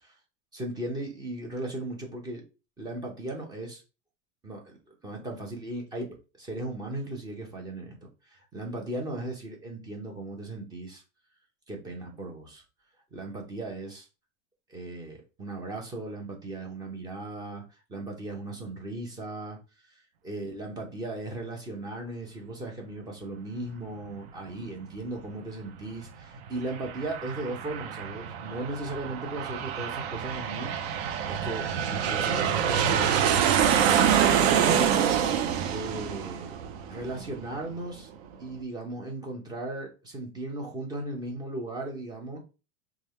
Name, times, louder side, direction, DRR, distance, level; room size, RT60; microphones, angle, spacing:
voice 1, 0.5-2.4 2.8-3.8 4.4-4.8 5.0-7.9 8.2-11.0 11.7-12.6 13.1-14.1 14.7-17.6 17.9-19.6 19.8-30.7 31.3-35.0 35.7-36.5 36.9-38.1 38.4-42.4, right 2 dB, 10° right, 0 dB, 0.7 m, -37 dB
Aircraft, 26.5-37.6, right 8 dB, 60° right, 0.6 m, -26 dB
3.3 x 2.3 x 4.2 m, 0.31 s
supercardioid pair, 170°, 37 cm